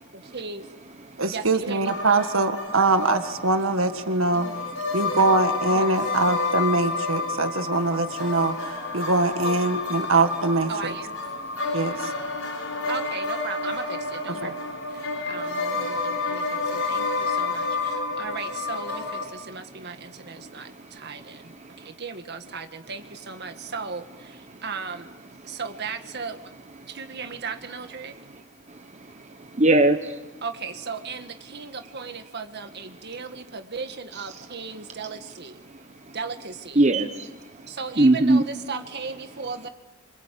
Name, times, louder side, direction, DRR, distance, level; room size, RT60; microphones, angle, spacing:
voice 1, 0.1-0.7 1.3-1.9 4.3-4.7 5.8-6.0 9.4-9.6 10.7-11.2 12.9-14.6 14.9-25.1 25.4-26.5 26.9-28.1 30.4-35.6 36.1-36.8 37.7-39.7, right 5 dB, 55° right, 7 dB, 1.8 m, -36 dB
voice 2, 1.2-4.5 4.9-8.6 8.9-10.9 11.7-12.1 14.4-14.5, right 3 dB, 75° right, 8 dB, 1.7 m, -23 dB
sound 1, 1.8-19.3, left 3 dB, 80° left, 5.8 m, -30 dB
voice 3, 11.4-11.8 12.4-12.9 15.0-15.1 15.9-16.0 16.3-18.2 19.8-19.9 20.2-21.9 24.5-24.6 25.4-25.6 26.8-26.9 28.7-30.3 35.7-35.8 36.1-36.2 36.8-38.4, right 2 dB, 35° right, 6 dB, 1.0 m, -25 dB
26.5 x 26.0 x 8.5 m, 1.1 s
head